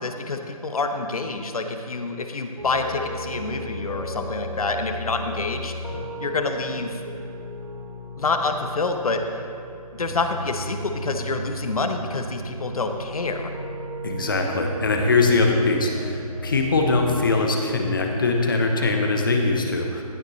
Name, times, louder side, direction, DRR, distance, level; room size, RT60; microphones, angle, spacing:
voice 1, 0.0-5.7 6.2-7.0 8.2-9.2 9.9-13.5, left 3 dB, 65° left, 6 dB, 0.9 m, -27 dB
sound 1, 2.6-17.0, right 1 dB, 70° right, 2.2 m, -35 dB
voice 2, 14.0-20.0, left 3 dB, 35° left, 2 dB, 0.9 m, -22 dB
15.5 x 6.6 x 3.1 m, 2.5 s
hypercardioid pair, 175°, 20 cm